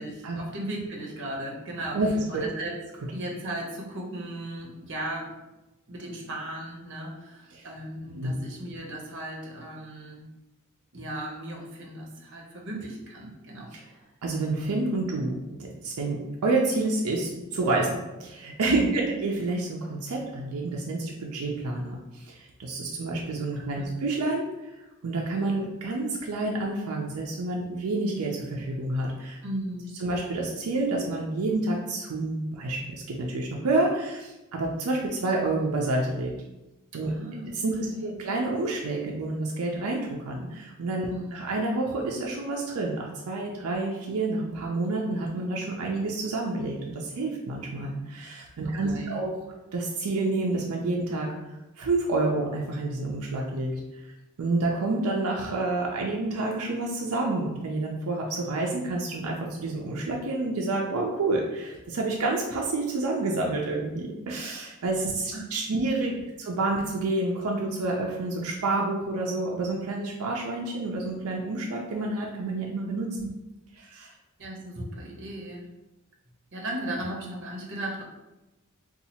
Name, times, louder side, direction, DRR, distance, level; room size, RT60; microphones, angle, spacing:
voice 1, 0.0-2.8 3.1-5.4 5.9-10.2 10.9-14.0 18.7-18.9 23.6-24.0 29.4-30.0 37.0-37.5 37.8-38.2 41.1-41.3 48.6-49.2 65.3-65.4 66.1-66.4 73.1-73.3 74.4-75.7 76.5-78.0, right 1 dB, 60° right, -1 dB, 0.8 m, -36 dB
voice 2, 1.9-2.4 7.5-7.7 8.1-8.3 13.7-13.8 14.2-24.8 25.0-29.4 30.0-32.8 33.1-36.3 36.9-37.1 37.5-37.7 38.0-49.4 49.7-51.3 51.8-54.0 54.4-66.1 66.4-73.1 73.8-74.1, right 2 dB, 90° right, -1 dB, 0.5 m, -29 dB
2.7 x 2.4 x 4.2 m, 1.0 s
head